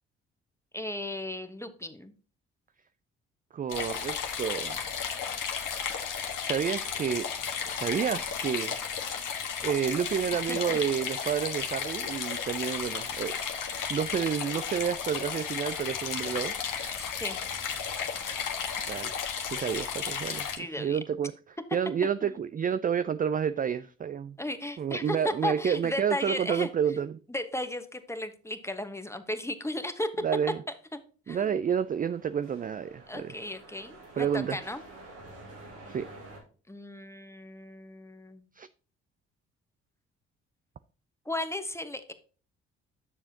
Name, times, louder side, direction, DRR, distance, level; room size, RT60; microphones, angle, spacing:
voice 1, 0.7-2.1 10.3-10.8 17.0-17.4 20.6-21.0 22.2-22.3 24.4-26.7 27.3-30.1 31.3-31.5 33.1-34.8 36.7-38.5 41.2-42.1, left 1 dB, 10° left, 1.2 m, -35 dB
voice 2, 3.5-4.8 6.4-7.3 7.7-8.8 9.6-13.3 13.9-16.5 18.9-21.3 21.7-24.4 24.8-27.1 30.2-30.6 31.3-33.3 34.2-34.6 35.9-36.1 38.6-38.7, right 8 dB, 25° right, 0.4 m, -30 dB
sound 1, 3.7-20.6, left 7 dB, 60° left, 1.5 m, -34 dB
sound 2, 31.6-36.4, right 2 dB, 90° right, 2.2 m, -49 dB
9.8 x 6.8 x 2.8 m
hypercardioid pair, 40°, 35 cm